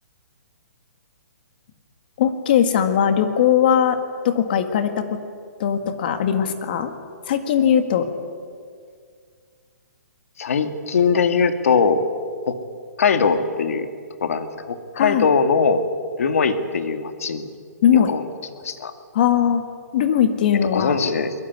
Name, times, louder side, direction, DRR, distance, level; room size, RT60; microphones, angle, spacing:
voice 1, 2.2-4.0 4.2-5.2 5.6-6.9 7.3-8.1 15.0-15.3 17.8-18.1 19.1-19.6 19.9-21.0, left 9 dB, 30° left, 8 dB, 1.8 m, -19 dB
voice 2, 10.4-12.0 12.5-12.6 13.0-13.9 14.2-15.8 16.2-17.6 18.1-18.2 18.6-18.9 20.7-21.3, left 5 dB, 55° left, 8 dB, 2.2 m, -21 dB
22.5 x 21.5 x 9.6 m, 2.1 s
hypercardioid pair, 175°, 9 cm